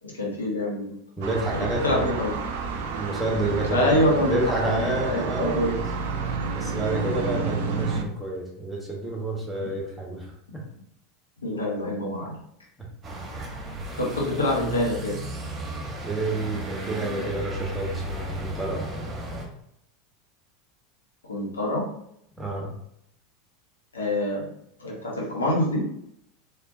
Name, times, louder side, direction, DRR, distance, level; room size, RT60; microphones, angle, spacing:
voice 1, 0.0-1.0 1.8-2.3 3.7-5.7 9.6-9.7 11.4-12.4 13.9-15.2 21.2-21.8 23.9-24.4 24.8-25.8, left 1 dB, 75° left, -3 dB, 1.1 m, -25 dB
voice 2, 1.2-2.1 3.0-3.9 4.3-5.8 6.5-10.3 10.5-10.6 13.4-13.5 15.8-18.9 22.4-22.7, right 2 dB, 5° right, -3 dB, 1.4 m, -29 dB
sound 1, 1.2-8.0, right 4 dB, 55° right, 0.5 m, -30 dB
sound 2, 13.0-19.5, right 1 dB, 25° right, 1.2 m, -34 dB
4.2 x 3.6 x 2.7 m, 0.73 s
figure-of-eight pair, 80°, 0 cm